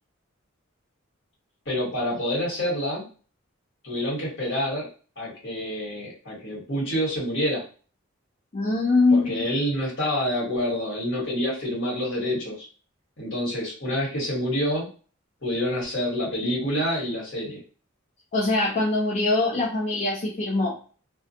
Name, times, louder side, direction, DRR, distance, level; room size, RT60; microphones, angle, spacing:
voice 1, 1.6-3.1 3.8-4.9 5.2-7.6 9.1-12.7 13.2-14.9 15.4-17.6, equal, 60° left, -4 dB, 1.3 m, -27 dB
voice 2, 8.5-9.5 18.3-20.8, left 3 dB, 35° left, -2 dB, 0.5 m, -23 dB
2.3 x 2.2 x 2.7 m, 0.38 s
head